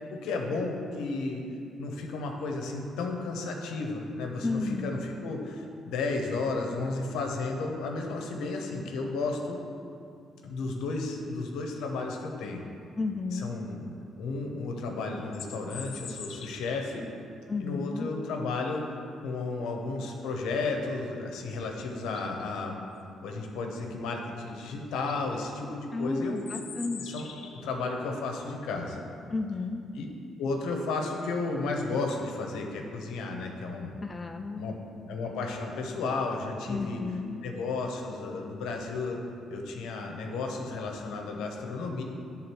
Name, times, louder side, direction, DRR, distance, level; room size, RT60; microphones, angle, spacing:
voice 1, 0.1-1.4 1.8-9.6 10.4-12.6 13.3-13.9 14.2-17.1 17.6-18.9 19.2-22.8 23.2-26.4 27.0-29.0 29.9-30.1 30.4-34.0 34.6-34.7 35.1-37.0 37.4-39.2 39.5-42.0, left 3 dB, 90° left, 2 dB, 0.9 m, -33 dB
voice 2, 4.4-4.9 13.0-13.5 17.5-18.1 25.9-27.0 29.3-29.8 34.0-34.8 36.7-37.4, left 3 dB, 25° left, 5 dB, 0.4 m, -32 dB
sound 1, 15.1-17.0 21.5-21.6 22.0-22.4 24.5-24.6 24.9-25.2 26.4-27.7, left 6 dB, 70° left, 0.7 m, -44 dB
10.5 x 3.7 x 4.5 m, 2.5 s
cardioid pair, 90°, 0 cm